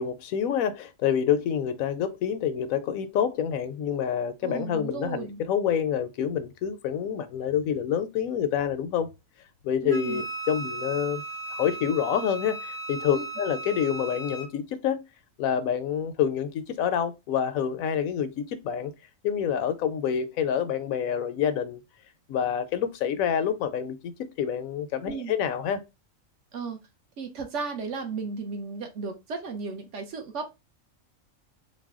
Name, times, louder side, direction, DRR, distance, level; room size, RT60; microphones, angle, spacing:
voice 1, 0.0-9.1 9.6-11.2 11.5-15.0 15.4-18.9 19.2-21.8 22.3-24.1 24.4-25.8, left 8 dB, 80° left, 1.0 m, -27 dB
voice 2, 4.4-5.4 9.8-10.2 13.1-13.2 25.0-25.4 26.5-26.8 27.2-30.5, right 4 dB, 65° right, 1.1 m, -34 dB
Wind instrument woodwind instrument, 9.9-14.5, right 3 dB, 40° right, 0.8 m, -36 dB
4.0 x 2.2 x 3.6 m
omnidirectional pair, 1.4 m